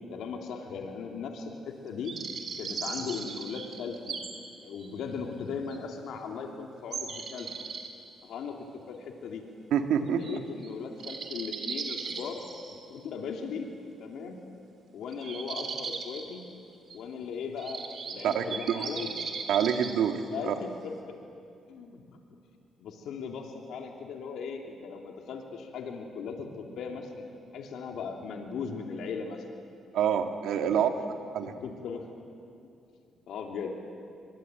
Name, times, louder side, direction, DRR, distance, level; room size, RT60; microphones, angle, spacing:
voice 1, 0.1-1.5 1.8-2.1 2.6-4.2 4.6-7.5 8.2-9.4 10.2-12.4 12.7-13.7 14.0-14.4 14.9-16.4 16.9-19.1 20.3-21.2 21.7-22.0 22.8-27.3 27.5-29.4 31.4-32.0 33.3-33.8, left 5 dB, 75° left, 2 dB, 2.8 m, -38 dB
sound 1, 2.0-4.3 4.8-4.9 5.7-5.8 6.9-7.9 10.2-10.4 10.6-10.7 11.0-12.8 15.1-16.2 16.9-17.0 17.6-20.0, right 5 dB, 55° right, 3.2 m, -37 dB
voice 2, 9.7-10.2 18.2-18.8 19.5-20.6 29.9-30.9 31.3-31.5, right 8 dB, 80° right, 6 dB, 2.0 m, -27 dB
24.0 x 22.0 x 9.1 m, 2.5 s
cardioid pair, 90°, 0 cm